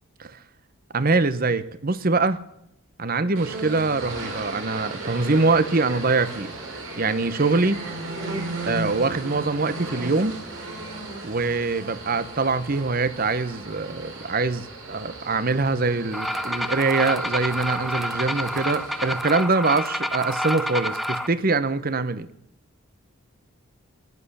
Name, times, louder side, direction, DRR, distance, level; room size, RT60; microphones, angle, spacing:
voice 1, 0.9-2.4 3.0-6.5 7.0-7.8 8.6-10.3 11.2-22.3, right 3 dB, 40° right, 15 dB, 0.9 m, -23 dB
sound 1, 3.4-19.2, right 2 dB, 70° right, 4.8 m, -36 dB
sound 2, 16.1-21.3, equal, ahead, 0.6 m, -28 dB
15.5 x 10.5 x 7.1 m, 0.80 s
head